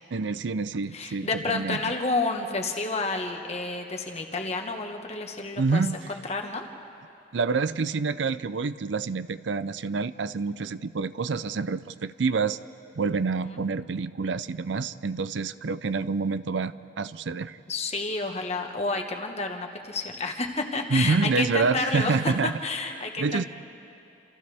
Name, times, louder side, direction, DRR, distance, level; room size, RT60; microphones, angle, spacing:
voice 1, 0.1-1.9 5.6-6.0 7.3-12.6 13.0-17.6 20.9-22.5 23.2-23.5, right 4 dB, 90° right, 15 dB, 0.5 m, -27 dB
voice 2, 0.9-6.7 13.4-13.6 17.7-23.5, left 3 dB, 35° left, 3 dB, 1.4 m, -30 dB
29.0 x 27.5 x 3.5 m, 2.8 s
head